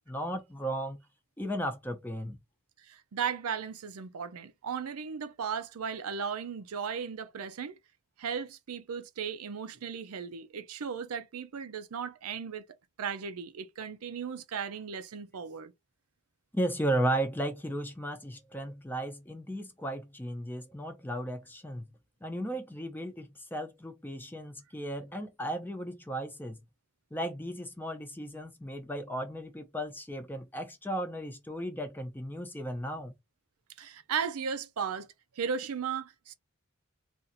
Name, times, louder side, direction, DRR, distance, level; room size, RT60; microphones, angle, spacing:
voice 1, 0.1-1.0 1.4-2.4 16.5-21.9 22.2-26.6 27.1-33.1, right 1 dB, 10° left, 0.6 m, -35 dB
voice 2, 2.8-7.8 8.2-12.6 13.0-15.7 33.8-35.1 35.4-36.3, right 6 dB, 85° right, 0.5 m, -36 dB
2.6 x 2.5 x 3.9 m
head